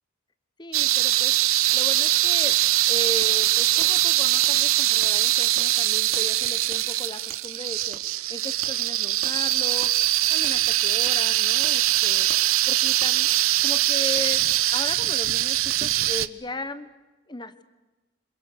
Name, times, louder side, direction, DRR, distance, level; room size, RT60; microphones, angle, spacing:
voice 1, 0.6-2.6 2.9-12.3 12.7-13.3 13.6-16.9 17.3-17.6, left 2 dB, 20° left, 12 dB, 1.1 m, -37 dB
sound 1, 0.7-16.3, right 15 dB, 85° right, 0.8 m, -22 dB
Wood, 2.5-2.6 3.2-3.3 3.8-3.9 4.4-4.5 5.0-5.1 5.6-5.7 6.1-6.3 6.7-6.8 7.3-7.4 7.9-8.0 8.6-8.7 9.2-9.4 9.8-9.9 10.4-10.6 11.1-11.2 11.6-11.7 12.3-12.4 13.0-13.1 14.2-14.3 15.0-15.1 15.7-15.8, right 6 dB, 70° right, 2.7 m, -41 dB
29.5 x 26.5 x 6.7 m, 1.1 s
head